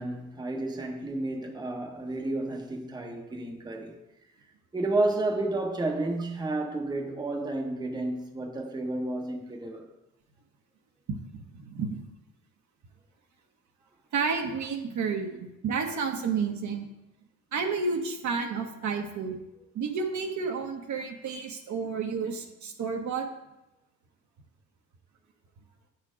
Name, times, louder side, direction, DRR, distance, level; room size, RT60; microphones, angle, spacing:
voice 1, 0.0-4.0 4.7-9.9, right 2 dB, 10° right, 0.9 m, -31 dB
voice 2, 11.1-12.0 14.1-15.4 15.6-16.9 17.5-19.4 19.7-23.2, right 5 dB, 55° right, 1.1 m, -31 dB
8.0 x 4.4 x 4.9 m
cardioid pair, 100°, 35 cm